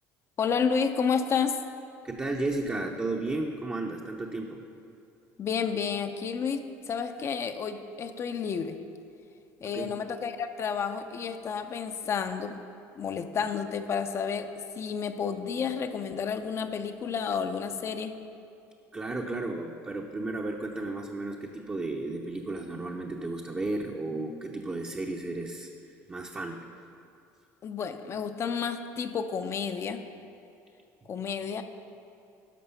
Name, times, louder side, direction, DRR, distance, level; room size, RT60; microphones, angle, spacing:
voice 1, 0.4-1.6 5.4-8.8 9.6-12.6 13.0-14.5 14.8-18.2 27.6-30.0 31.1-31.6, left 6 dB, 40° left, 8 dB, 0.6 m, -30 dB
voice 2, 2.0-4.6 9.7-9.9 18.9-25.7 26.1-26.6, right 2 dB, 20° right, 0 dB, 0.7 m, -33 dB
11.5 x 6.0 x 5.6 m, 2.6 s
supercardioid pair, 100°, 7 cm